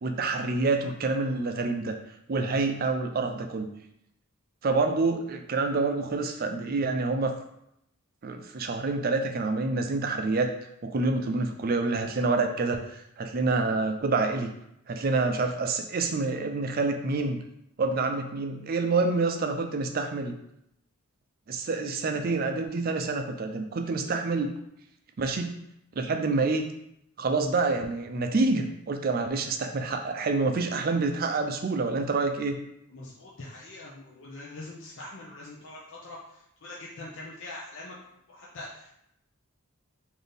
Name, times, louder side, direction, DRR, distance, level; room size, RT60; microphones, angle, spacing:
voice 1, 0.0-2.0 2.3-3.7 4.6-7.3 8.2-10.5 10.8-12.9 13.2-14.5 14.9-17.4 17.8-20.4 21.5-24.5 25.2-25.6 26.0-26.7 27.2-32.6, right 3 dB, 45° right, 5 dB, 0.4 m, -27 dB
voice 2, 32.9-38.9, left 2 dB, 60° left, -4 dB, 0.6 m, -43 dB
4.0 x 2.6 x 3.4 m, 0.78 s
head